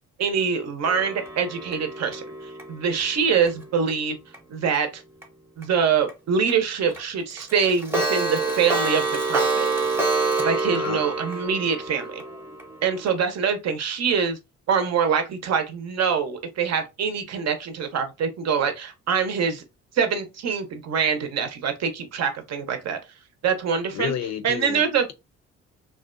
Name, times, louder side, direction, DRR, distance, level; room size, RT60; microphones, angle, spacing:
voice 1, 0.2-4.2 4.5-5.0 5.6-9.7 10.4-12.2 12.8-14.4 14.7-19.6 19.9-23.0 23.4-24.1 24.4-25.0, right 6 dB, 60° right, 0.6 m, -24 dB
Clock, 0.8-3.9 4.3-4.4 4.7-4.8 5.2-5.3 5.6-5.7 6.1-6.2 6.5-6.6 6.9-7.0 7.3-13.2, right 3 dB, 10° right, 0.7 m, -27 dB
voice 2, 10.7-11.1 23.9-24.8, left 9 dB, 60° left, 0.5 m, -30 dB
2.5 x 2.2 x 2.4 m
cardioid pair, 90°, 30 cm